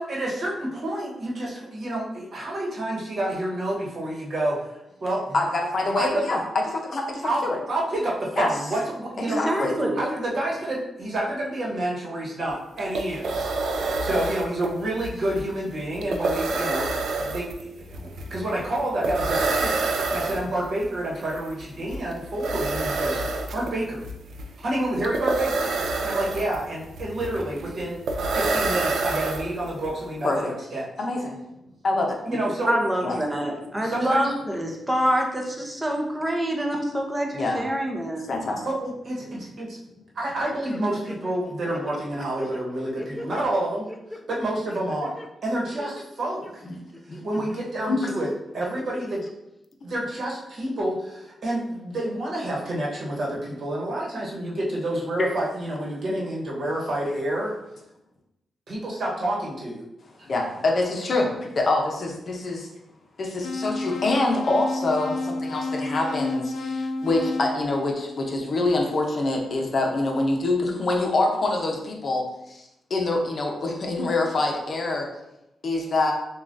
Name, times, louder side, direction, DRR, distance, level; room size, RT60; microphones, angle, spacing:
voice 1, 0.0-4.8 5.0-5.3 5.9-6.3 7.2-9.4 10.0-13.5 13.8-23.2 23.5-24.0 24.6-25.7 26.0-28.0 28.3-30.9 32.3-32.7 33.6-34.2 38.6-39.8 40.1-43.9 44.3-45.2 45.4-46.6 47.2-48.3 48.5-49.2 49.8-57.5 58.7-59.8, right 1 dB, 55° right, -3 dB, 1.1 m, -29 dB
voice 2, 5.3-6.4 6.7-7.6 8.4-8.5 9.3-9.8 30.2-30.4 31.0-31.4 31.8-32.2 33.0-33.2 37.3-37.6 38.3-38.6 47.2-47.3 47.9-48.0 55.2-55.3 60.3-62.7 63.2-72.6 72.9-75.1 75.6-76.1, left 2 dB, 45° left, 1 dB, 0.7 m, -25 dB
voice 3, 9.3-10.0 32.7-38.2, right 1 dB, 15° right, 1 dB, 0.7 m, -26 dB
sound 1, 12.5-12.6 12.8-29.9, right 3 dB, 75° right, 0.4 m, -28 dB
sound 2, 40.6-41.4 41.7-43.5 43.9-44.2 44.7-45.3 45.6-46.5 46.9-47.6 48.0-48.1 48.8-49.3 49.7-49.8, left 1 dB, 10° left, 0.4 m, -40 dB
sound 3, 63.4-68.6, left 2 dB, 80° left, 0.4 m, -31 dB
6.8 x 2.4 x 2.6 m, 0.88 s
wide cardioid pair, 120°, 0 cm